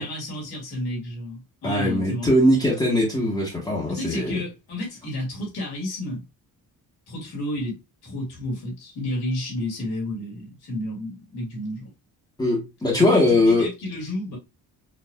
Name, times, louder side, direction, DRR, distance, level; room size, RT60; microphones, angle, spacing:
voice 1, 0.0-2.3 3.9-6.2 7.1-11.9 12.9-14.4, left 1 dB, 90° left, 2.4 m, -31 dB
voice 2, 1.6-4.4 12.4-13.7, left 1 dB, 10° left, 1.1 m, -20 dB
4.4 x 3.0 x 2.3 m
cardioid pair, 130°, 36 cm